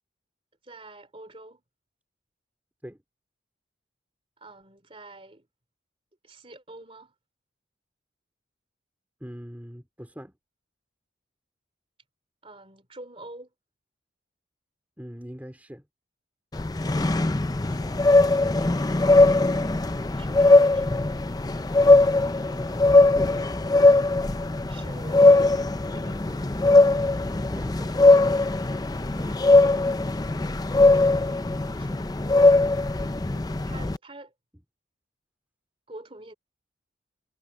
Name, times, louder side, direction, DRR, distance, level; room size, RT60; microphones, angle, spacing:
voice 1, 0.6-1.6 4.4-5.5 6.2-7.1 12.4-13.5 17.7-18.5 19.7-21.0 24.7-25.4 25.9-26.6 29.1-30.0 31.8-32.5 33.2-34.3 35.9-36.3, right 2 dB, 30° right, 3.0 m, -47 dB
voice 2, 9.2-10.4 15.0-15.9 22.4-23.3 27.5-28.1, equal, 10° right, 2.9 m, -42 dB
sound 1, 16.5-34.0, left 2 dB, 20° left, 0.5 m, -20 dB
head